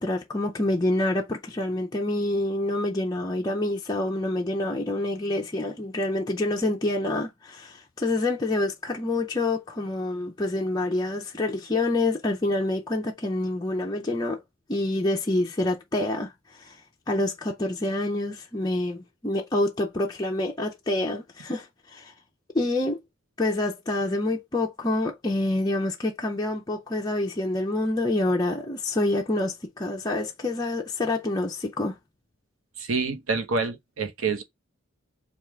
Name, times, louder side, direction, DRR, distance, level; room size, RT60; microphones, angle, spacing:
voice 1, 0.0-14.4 14.7-16.3 16.6-16.8 17.1-22.1 22.5-23.0 23.4-31.9, left 2 dB, 20° left, 0.5 m, -27 dB
voice 2, 32.8-34.4, right 4 dB, 90° right, 0.8 m, -27 dB
3.5 x 2.4 x 4.4 m
head